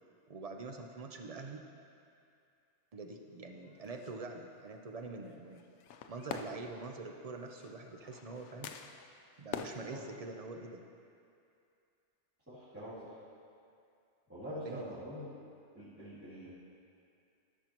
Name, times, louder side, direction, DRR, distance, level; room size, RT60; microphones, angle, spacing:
voice 1, 0.3-1.6 2.9-5.6 6.1-8.7 9.4-10.8 14.5-15.0, right 3 dB, 45° right, 3 dB, 0.5 m, -45 dB
sound 1, 3.5-4.2 5.2-9.7, left 7 dB, 75° left, 0.8 m, -46 dB
voice 2, 12.5-13.1 14.3-15.3 15.7-16.5, equal, 10° right, -15 dB, 2.3 m, -44 dB
14.5 x 7.2 x 3.0 m, 2.5 s
omnidirectional pair, 1.3 m